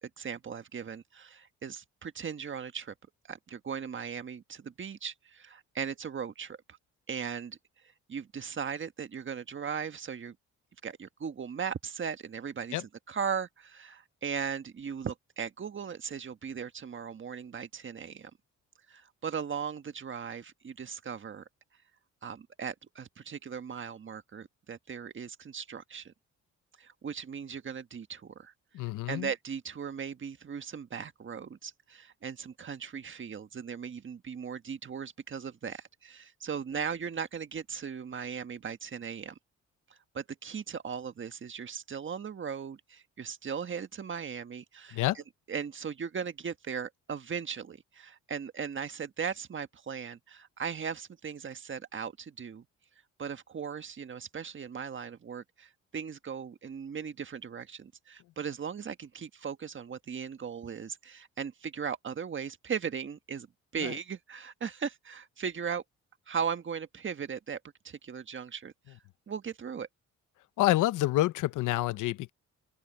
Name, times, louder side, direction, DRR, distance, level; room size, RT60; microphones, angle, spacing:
voice 1, 0.0-2.9 3.3-6.6 7.1-7.6 8.1-10.3 10.8-12.8 13.1-18.3 18.9-21.5 22.2-26.1 26.8-28.5 29.1-39.4 39.9-45.2 45.5-52.6 53.2-63.5 63.7-65.8 66.3-69.0 69.3-69.9, right 7 dB, 40° right, 1.5 m, -38 dB
voice 2, 28.7-29.3 44.9-45.2 63.8-63.9 70.6-72.3, left 16 dB, 90° left, 0.8 m, -28 dB
open air
cardioid pair, 90°, 30 cm